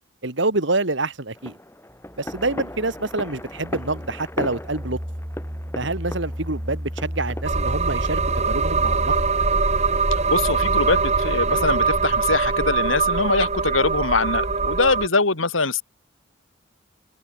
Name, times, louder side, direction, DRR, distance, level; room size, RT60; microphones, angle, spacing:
voice 1, 0.2-1.5 2.2-5.0 5.8-8.2 8.5-9.1, right 2 dB, 65° right, 2.3 m, -26 dB
sound 1, 1.4-7.4, left 1 dB, 10° left, 5.1 m, -37 dB
sound 2, 1.9-9.7, equal, 15° right, 4.0 m, -34 dB
sound 3, 7.4-15.1, right 4 dB, 35° right, 2.5 m, -22 dB
voice 2, 10.3-15.8, left 3 dB, 85° left, 3.2 m, -23 dB
head